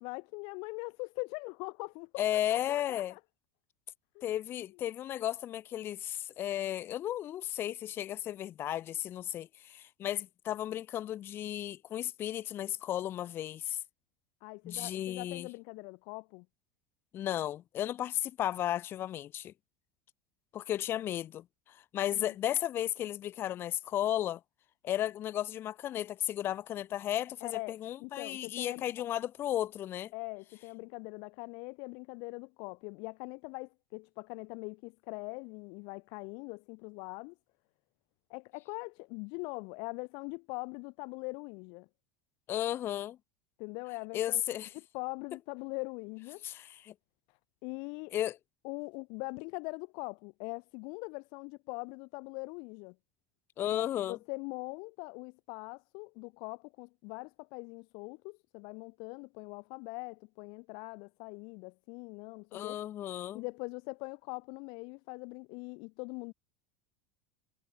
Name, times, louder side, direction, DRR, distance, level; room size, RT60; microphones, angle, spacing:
voice 1, 0.0-3.2 4.1-4.3 14.4-16.5 22.1-22.4 27.4-28.8 30.1-37.3 38.3-41.9 43.6-44.4 44.9-46.4 47.6-48.1 48.6-52.9 53.7-62.8 63.3-66.3, left 32 dB, 50° left, 1.1 m, -42 dB
voice 2, 2.2-3.1 4.2-13.8 14.6-15.5 17.1-19.5 20.5-24.4 24.8-30.1 42.5-43.2 44.1-44.7 46.4-46.9 48.1-48.4 53.6-54.2 62.5-63.4, left 12 dB, 25° left, 0.3 m, -34 dB
supercardioid pair, 165°, 10 cm